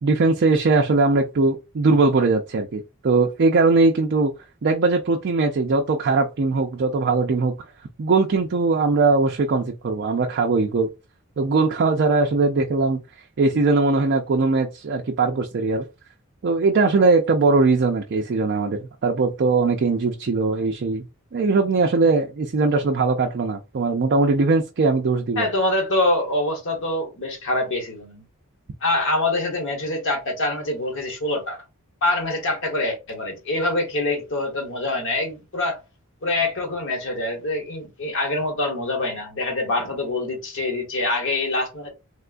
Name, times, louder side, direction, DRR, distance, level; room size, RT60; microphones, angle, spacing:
voice 1, 0.0-4.3 4.6-7.5 8.0-10.9 11.4-13.0 13.4-15.9 16.4-21.0 21.3-25.5, right 3 dB, 50° right, 0.4 m, -20 dB
voice 2, 25.4-28.2 28.8-31.6 32.0-35.8 36.2-41.9, left 2 dB, 60° left, 1.2 m, -25 dB
3.5 x 2.2 x 2.5 m
head